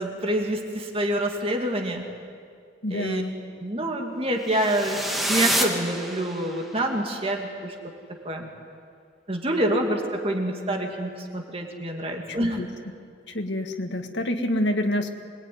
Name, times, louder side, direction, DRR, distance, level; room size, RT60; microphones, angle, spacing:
voice 1, 0.0-2.0 2.9-3.2 3.6-7.7 8.2-8.5 9.3-12.6, right 1 dB, 30° right, 2 dB, 2.5 m, -27 dB
voice 2, 2.8-3.3 12.3-12.7 13.3-15.1, left 1 dB, 75° left, 5 dB, 1.9 m, -27 dB
sound 1, 4.5-6.7, equal, ahead, 2.3 m, -27 dB
25.0 x 20.5 x 9.6 m, 2.2 s
head